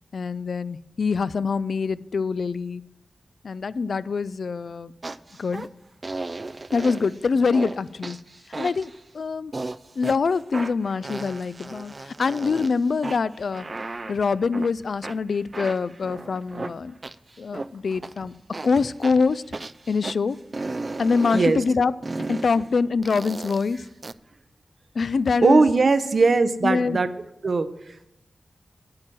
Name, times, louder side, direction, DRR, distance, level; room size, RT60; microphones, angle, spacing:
voice 1, 0.1-2.8 3.4-4.9 5.4-5.7 6.7-8.2 8.6-9.5 10.0-13.7 14.1-16.9 17.4-18.3 18.6-19.4 19.9-20.4 21.0-21.9 22.3-23.8 25.0-25.6 26.6-27.0, left 4 dB, 75° left, 17 dB, 0.3 m, -24 dB
sound 1, 5.0-5.7 6.0-7.2 7.5-9.0 9.5-10.2 10.5-12.7 13.0-14.7 15.0-17.7 18.0-18.2 18.5-20.1 20.5-21.5 22.0-22.5 23.0-24.1, right 2 dB, 35° right, 0.3 m, -34 dB
voice 2, 21.3-21.6 25.4-27.1 27.4-28.1, right 3 dB, 55° right, 11 dB, 0.7 m, -20 dB
9.1 x 8.6 x 6.1 m, 0.84 s
wide cardioid pair, 95°, 0 cm